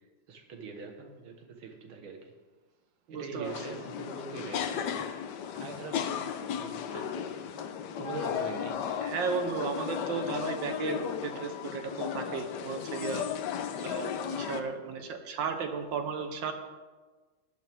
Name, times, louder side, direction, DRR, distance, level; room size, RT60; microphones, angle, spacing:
voice 1, 0.3-2.3 3.1-5.3 5.5-7.5 8.0-8.8, right 4 dB, 85° right, 4 dB, 2.2 m, -43 dB
voice 2, 3.1-3.5 9.0-13.2 13.8-16.5, right 5 dB, 65° right, 6 dB, 1.7 m, -34 dB
sound 1, 3.4-14.6, left 8 dB, 65° left, 1.2 m, -35 dB
15.0 x 11.5 x 3.5 m, 1.3 s
omnidirectional pair, 2.3 m